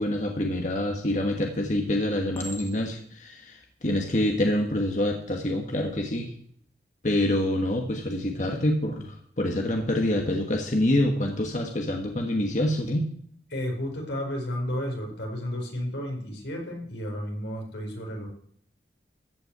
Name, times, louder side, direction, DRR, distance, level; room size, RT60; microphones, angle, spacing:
voice 1, 0.0-6.3 7.0-13.1, left 1 dB, 45° left, 2 dB, 1.4 m, -26 dB
Chink clink, 2.3-3.1 3.9-4.2, equal, 15° left, 1.3 m, -43 dB
voice 2, 13.5-18.3, equal, 90° left, 1 dB, 4.5 m, -32 dB
14.5 x 5.9 x 8.1 m, 0.63 s
head